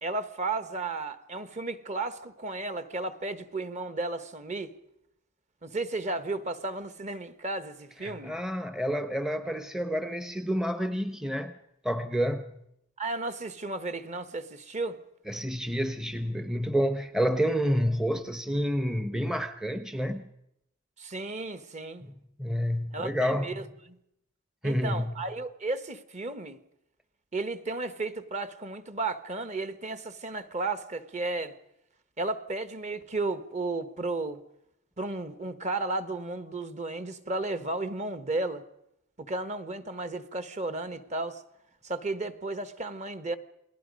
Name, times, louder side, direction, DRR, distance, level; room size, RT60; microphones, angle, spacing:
voice 1, 0.0-4.7 5.6-8.4 13.0-15.0 21.0-22.0 22.9-24.0 24.6-26.6 27.3-31.5 32.2-34.4 35.0-38.6 39.2-41.4 41.8-43.4, right 2 dB, 35° right, 1.1 m, -34 dB
voice 2, 8.0-11.6 11.8-12.6 15.3-20.3 22.0-22.1 22.4-23.6 24.6-25.3, equal, 5° right, 0.7 m, -29 dB
28.5 x 19.5 x 5.3 m
head